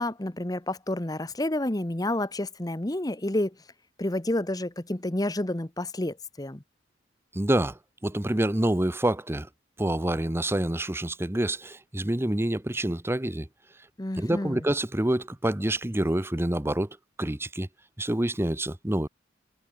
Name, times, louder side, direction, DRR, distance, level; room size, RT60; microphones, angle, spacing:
voice 1, 0.0-3.6 4.0-6.6 14.0-14.6, left 1 dB, 20° left, 1.1 m, -29 dB
voice 2, 7.3-9.5 9.8-13.5 14.2-17.7 18.0-19.1, right 1 dB, 15° right, 0.9 m, -27 dB
head